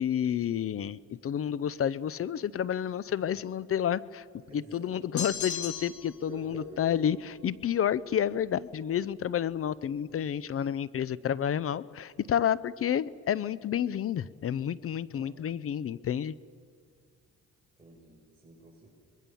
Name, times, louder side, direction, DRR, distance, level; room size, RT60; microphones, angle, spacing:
voice 1, 0.0-4.2 4.5-16.3, left 9 dB, 50° left, 19 dB, 0.6 m, -30 dB
voice 2, 4.5-5.0 6.2-7.1 10.0-10.2 15.2-15.5 17.8-18.9, right 2 dB, 15° right, -5 dB, 6.8 m, -48 dB
sound 1, 5.2-6.2, left 8 dB, 75° left, 2.6 m, -35 dB
26.0 x 22.0 x 7.1 m, 2.1 s
cardioid pair, 90°, 30 cm